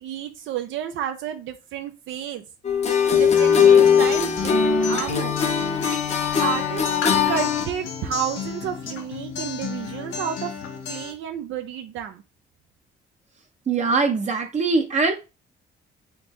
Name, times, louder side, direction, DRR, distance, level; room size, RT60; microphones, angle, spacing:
voice 1, 0.0-2.4 3.1-5.4 6.4-10.5 10.9-12.2, right 9 dB, 75° right, 0.4 m, -31 dB
sound 1, 2.6-7.7, left 7 dB, 35° left, 0.6 m, -19 dB
Acoustic guitar, 3.1-11.1, left 7 dB, 80° left, 0.9 m, -32 dB
voice 2, 13.7-15.1, right 4 dB, 35° right, 0.6 m, -22 dB
3.6 x 2.6 x 3.0 m
cardioid pair, 90°, 20 cm